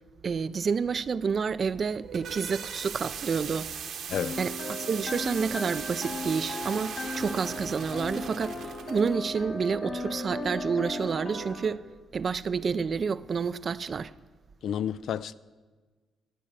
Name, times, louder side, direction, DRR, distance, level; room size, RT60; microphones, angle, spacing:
voice 1, 0.2-3.7 4.4-11.8 12.1-14.1, right 5 dB, 45° right, 0.4 m, -29 dB
sound 1, 1.8-9.1, right 7 dB, 70° right, 1.3 m, -39 dB
sound 2, 4.1-11.7, left 1 dB, 50° left, 2.0 m, -36 dB
voice 2, 14.6-15.3, left 9 dB, 70° left, 0.3 m, -30 dB
12.5 x 8.5 x 6.5 m
cardioid pair, 90°, 0 cm